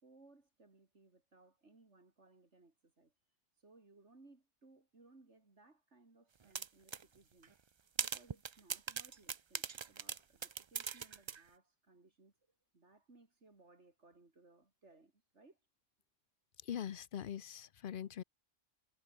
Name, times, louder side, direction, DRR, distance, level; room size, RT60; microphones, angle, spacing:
voice 1, 0.0-7.5 8.0-15.6, right 3 dB, 65° right, 3.7 m, -65 dB
sound 1, 6.5-7.0 7.4-7.5 8.0-11.4, right 6 dB, 45° right, 0.3 m, -40 dB
voice 2, 16.6-18.2, left 9 dB, 55° left, 0.7 m, -42 dB
omnidirectional pair, 1.3 m